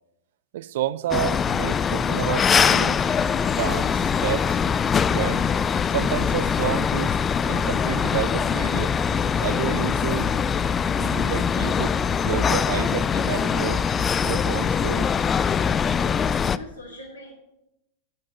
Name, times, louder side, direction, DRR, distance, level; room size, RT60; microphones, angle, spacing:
voice 1, 0.5-3.1 3.5-4.6 5.1-5.5 5.9-7.2 7.5-9.0 9.4-10.4 11.0-13.9 14.2-15.1, right 13 dB, 55° right, 0.4 m, -30 dB
sound 1, 1.1-16.6, left 7 dB, 20° left, 0.3 m, -23 dB
sound 2, 5.3-12.8, right 2 dB, 25° right, 2.7 m, -48 dB
voice 2, 16.5-17.3, left 1 dB, 85° right, 1.8 m, -42 dB
9.1 x 7.6 x 7.4 m
figure-of-eight pair, 90°, 0 cm